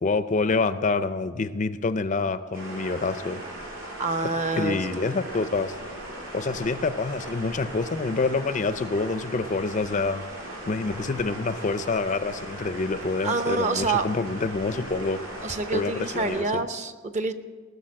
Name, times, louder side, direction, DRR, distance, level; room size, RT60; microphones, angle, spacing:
voice 1, 0.0-3.4 4.5-5.7 6.3-10.2 10.6-15.2 15.7-16.6, left 3 dB, 35° left, 12 dB, 0.4 m, -27 dB
sound 1, 2.5-16.4, right 1 dB, 75° right, 5.2 m, -38 dB
voice 2, 4.0-5.2 13.2-14.1 15.4-17.3, right 3 dB, 35° right, 9 dB, 0.7 m, -27 dB
18.5 x 6.9 x 7.5 m, 1.5 s
head